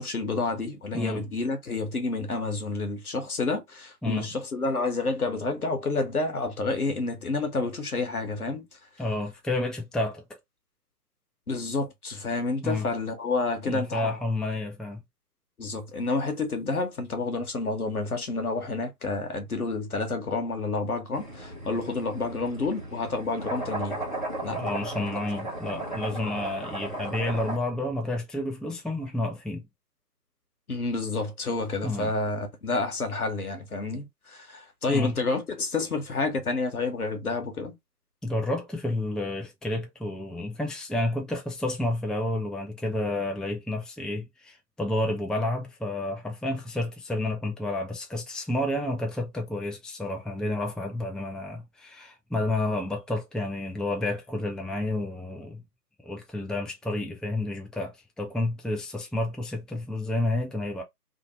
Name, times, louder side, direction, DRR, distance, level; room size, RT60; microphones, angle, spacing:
voice 1, 0.0-8.6 11.5-14.1 15.6-24.0 24.4-24.6 26.1-26.2 30.7-37.7, left 3 dB, 60° left, 0.8 m, -29 dB
voice 2, 9.0-10.2 12.6-12.9 13.7-15.0 24.5-29.6 31.8-32.1 34.9-35.2 38.2-55.6 56.0-60.8, left 2 dB, ahead, 0.3 m, -30 dB
sound 1, 21.1-27.6, right 2 dB, 30° right, 0.9 m, -35 dB
2.6 x 2.1 x 2.9 m
figure-of-eight pair, 160°, 49 cm